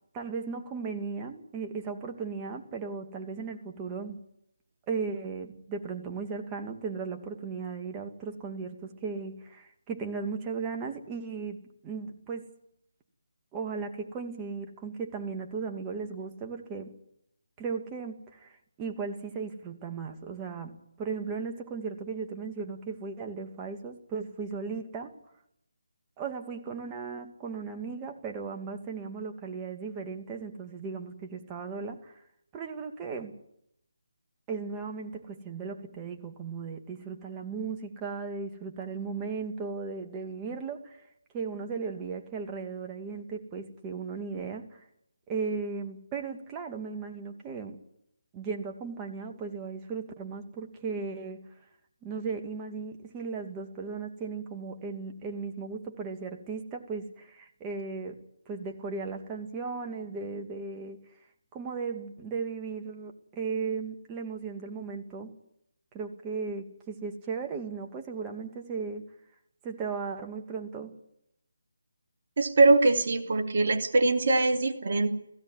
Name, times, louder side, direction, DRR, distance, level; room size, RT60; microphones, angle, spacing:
voice 1, 0.1-4.2 4.9-12.5 13.5-17.0 17.6-25.2 26.2-32.2 32.5-33.3 34.5-41.1 41.3-44.9 45.3-47.8 48.3-51.4 52.0-58.2 58.5-61.0 61.5-65.4 65.9-69.1 69.6-70.9, right 5 dB, 20° right, 3 dB, 2.2 m, -36 dB
voice 2, 72.4-75.1, right 2 dB, 50° right, 3 dB, 2.9 m, -22 dB
16.5 x 16.0 x 9.6 m, 0.76 s
figure-of-eight pair, 155°, 0 cm